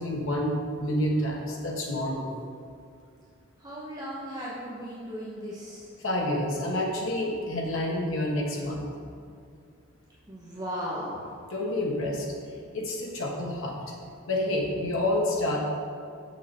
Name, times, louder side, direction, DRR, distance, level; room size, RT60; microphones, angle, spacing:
voice 1, 0.0-2.3 6.0-8.8 11.5-12.3 12.7-13.8 14.3-15.6, left 1 dB, 60° left, -2 dB, 1.4 m, -28 dB
voice 2, 3.6-5.9 10.3-11.2, equal, 20° right, -7 dB, 1.0 m, -36 dB
6.8 x 6.4 x 4.2 m, 2.4 s
head